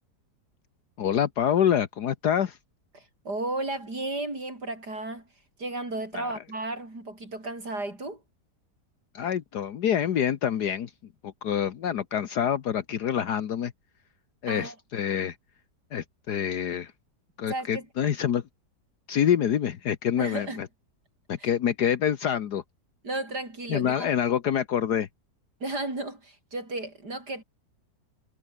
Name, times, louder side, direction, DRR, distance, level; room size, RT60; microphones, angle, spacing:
voice 1, 1.0-2.6 6.1-6.3 9.1-10.9 11.2-13.7 14.4-15.4 15.9-16.9 17.4-18.4 19.1-20.7 21.3-22.6 23.7-25.1, left 9 dB, 70° left, 1.7 m, -26 dB
voice 2, 2.9-5.3 5.6-8.2 14.5-14.8 17.5-17.9 20.2-20.6 21.4-21.5 23.0-24.1 25.6-27.4, right 2 dB, 70° right, 8.0 m, -34 dB
omnidirectional pair, 1.8 m